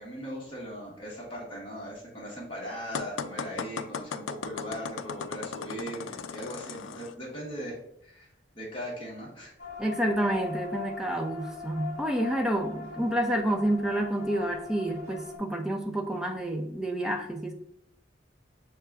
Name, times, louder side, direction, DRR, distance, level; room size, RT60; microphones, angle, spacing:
voice 1, 0.0-8.3 8.6-9.5, equal, 30° left, -5 dB, 1.1 m, -39 dB
sound 1, 2.9-7.1, left 6 dB, 90° left, 0.3 m, -37 dB
sound 2, 9.6-15.4, left 4 dB, 50° left, 1.1 m, -40 dB
voice 2, 9.8-17.5, right 1 dB, 5° right, 3 dB, 0.4 m, -29 dB
6.5 x 2.2 x 3.5 m, 0.74 s
head